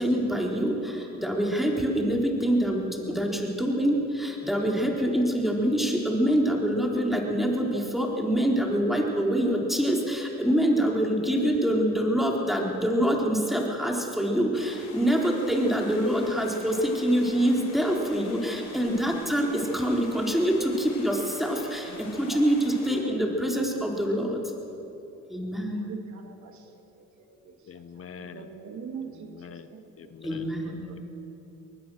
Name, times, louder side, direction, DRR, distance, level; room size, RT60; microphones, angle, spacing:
voice 1, 0.0-24.4 25.3-25.9 30.2-30.9, equal, ahead, 0 dB, 4.0 m, -25 dB
sound 1, 14.5-23.0, left 4 dB, 85° left, 4.1 m, -47 dB
voice 2, 25.8-26.5 28.2-29.3 29.7-29.8, right 6 dB, 70° right, 4 dB, 2.5 m, -40 dB
voice 3, 27.7-28.5 29.0-29.7 30.0-30.4, left 7 dB, 50° left, 11 dB, 1.0 m, -44 dB
22.5 x 19.5 x 6.5 m, 3.0 s
cardioid pair, 90°, 30 cm